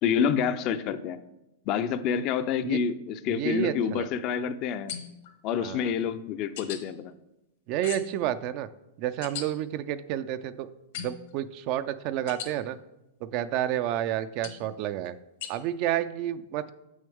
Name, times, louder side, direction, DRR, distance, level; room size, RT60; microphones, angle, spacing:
voice 1, 0.0-1.2 1.7-4.9 5.4-7.1, left 7 dB, 40° left, 11 dB, 0.5 m, -28 dB
voice 2, 3.3-4.1 5.6-5.9 7.7-8.7 9.0-10.7 10.9-12.8 13.2-15.1 15.5-16.7, right 12 dB, 45° right, 13 dB, 0.4 m, -30 dB
sound 1, 4.9-5.3 6.6-6.8 7.8-8.2 9.2-9.5 10.9-11.3 12.3-12.5 14.4-14.7 15.4-15.5, left 8 dB, 65° left, 1.1 m, -38 dB
7.6 x 6.3 x 3.5 m, 0.92 s
hypercardioid pair, 135°, 0 cm